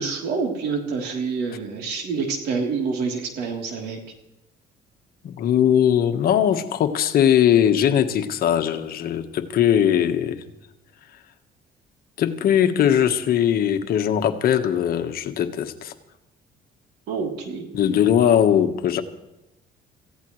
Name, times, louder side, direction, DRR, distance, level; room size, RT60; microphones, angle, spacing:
voice 1, 0.0-4.0 17.1-17.6, right 5 dB, 75° right, 1 dB, 3.3 m, -27 dB
voice 2, 5.2-10.4 12.2-15.9 17.7-19.0, left 9 dB, 65° left, 7 dB, 1.3 m, -20 dB
26.5 x 15.5 x 3.2 m, 0.91 s
cardioid pair, 110°, 17 cm